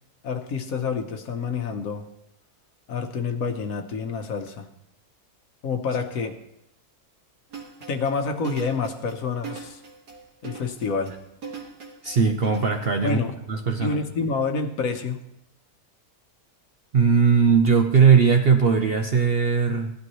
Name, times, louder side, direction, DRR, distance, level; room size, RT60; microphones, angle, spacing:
voice 1, 0.2-2.1 2.9-4.7 5.6-6.4 7.9-9.8 10.4-11.2 13.0-13.4 13.8-15.2, left 5 dB, 65° left, 6 dB, 1.3 m, -28 dB
sound 1, 7.5-13.1, right 5 dB, 90° right, 2.4 m, -40 dB
voice 2, 12.0-13.2 13.5-14.0 16.9-19.9, right 6 dB, 50° right, 4 dB, 0.8 m, -19 dB
16.5 x 11.5 x 3.1 m, 0.82 s
omnidirectional pair, 1.7 m